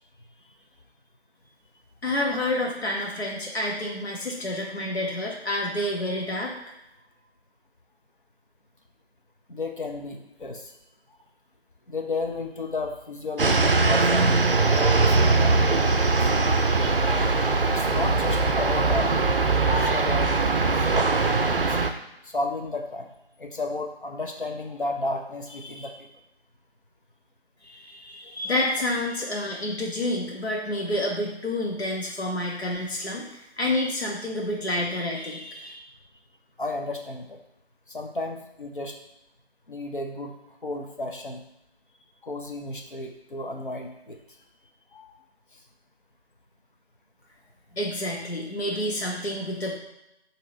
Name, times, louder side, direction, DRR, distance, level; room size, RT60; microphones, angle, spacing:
voice 1, 2.0-6.5 27.6-35.7 47.7-49.8, left 1 dB, 70° left, -1 dB, 1.1 m, -29 dB
voice 2, 9.5-10.7 11.9-16.4 17.6-19.2 19.5-20.4 20.7-20.9 21.6-21.8 22.2-23.1 23.4-26.1 36.6-37.4 37.9-38.9 39.7-40.3 40.6-41.4 42.2-44.2 44.9-45.1, left 2 dB, 50° left, 2 dB, 0.7 m, -33 dB
sound 1, 13.4-21.9, right 3 dB, 55° right, 0.4 m, -21 dB
6.2 x 2.9 x 2.7 m, 0.87 s
figure-of-eight pair, 165°, 33 cm